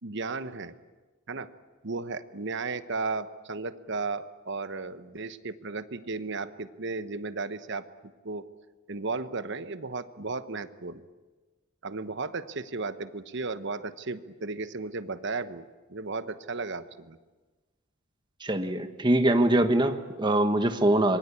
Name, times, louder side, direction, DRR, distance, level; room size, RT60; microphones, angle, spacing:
voice 1, 0.0-0.8 1.3-1.5 1.8-7.8 8.2-8.4 8.9-11.0 11.8-17.2, right 3 dB, 60° right, 12 dB, 1.1 m, -34 dB
voice 2, 18.4-21.2, right 1 dB, 20° right, 7 dB, 1.4 m, -23 dB
26.0 x 22.0 x 8.5 m, 1.3 s
head